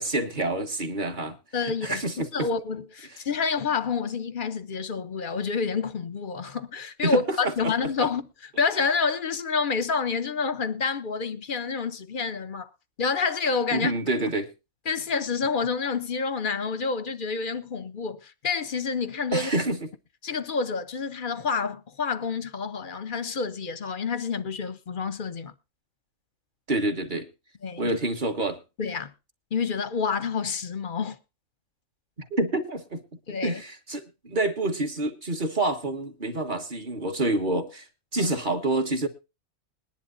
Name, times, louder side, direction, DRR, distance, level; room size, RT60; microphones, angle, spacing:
voice 1, 0.0-1.4 1.6-2.5 7.0-7.4 7.6-7.7 13.7-14.5 19.3-19.8 26.7-27.3 27.8-28.6 32.3-33.0 33.4-37.8 38.1-39.1, right 2 dB, 35° right, 1.4 m, -27 dB
voice 2, 1.5-2.0 2.3-12.7 13.0-13.9 14.9-19.5 20.2-25.5 27.6-28.0 28.8-29.1 29.5-31.2 33.3-33.6 38.2-38.3, left 5 dB, 45° left, 0.7 m, -28 dB
21.5 x 10.5 x 2.6 m
omnidirectional pair, 1.5 m